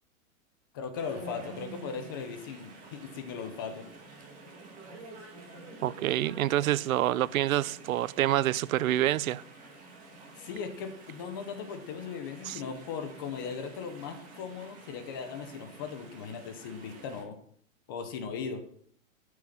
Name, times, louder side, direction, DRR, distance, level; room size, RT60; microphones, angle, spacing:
voice 1, 0.7-3.9 10.4-17.4 17.9-18.6, left 6 dB, 15° left, 0.6 m, -38 dB
Chatter / Stream, 0.9-17.2, right 3 dB, 20° right, 2.7 m, -49 dB
voice 2, 5.8-9.4 12.5-12.6, right 13 dB, 90° right, 0.6 m, -27 dB
12.5 x 6.3 x 5.7 m
supercardioid pair, 175°, 40 cm